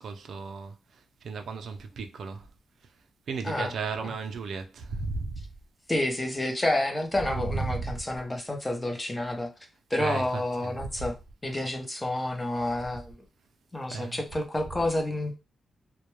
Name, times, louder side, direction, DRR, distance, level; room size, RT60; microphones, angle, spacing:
voice 1, 0.0-2.5 3.3-5.5 7.4-8.0 10.0-11.1 13.9-14.2, right 4 dB, 70° right, 0.4 m, -35 dB
voice 2, 5.9-9.5 9.9-11.2 11.4-13.1 13.7-15.4, left 1 dB, 15° left, 0.5 m, -29 dB
2.1 x 2.1 x 3.0 m
wide cardioid pair, 135°, 0 cm